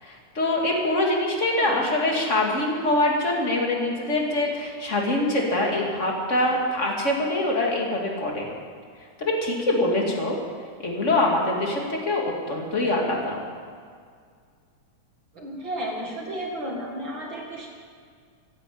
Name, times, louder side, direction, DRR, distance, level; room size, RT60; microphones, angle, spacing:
voice 1, 0.0-8.5 9.2-10.4 10.8-13.4, left 1 dB, 25° left, -1 dB, 2.5 m, -24 dB
voice 2, 15.3-17.7, right 1 dB, 40° right, 0 dB, 2.4 m, -33 dB
15.5 x 11.0 x 8.6 m, 2.1 s
omnidirectional pair, 3.5 m